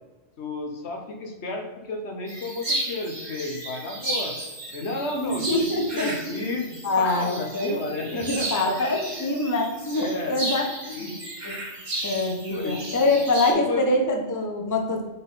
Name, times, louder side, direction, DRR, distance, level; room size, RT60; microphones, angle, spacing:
voice 1, 0.4-4.3 4.7-5.7 5.9-6.7 7.0-9.3 10.0-10.4 10.9-11.1 12.5-12.8 13.5-13.8, left 2 dB, 70° left, 3 dB, 1.2 m, -32 dB
sound 1, 2.3-13.5, right 1 dB, 40° right, 1.8 m, -34 dB
voice 2, 5.1-6.6 6.8-7.8 8.3-11.1 11.4-11.6 12.0-15.1, left 2 dB, 20° left, 3 dB, 0.6 m, -25 dB
5.6 x 3.9 x 5.5 m, 1.2 s
omnidirectional pair, 1.2 m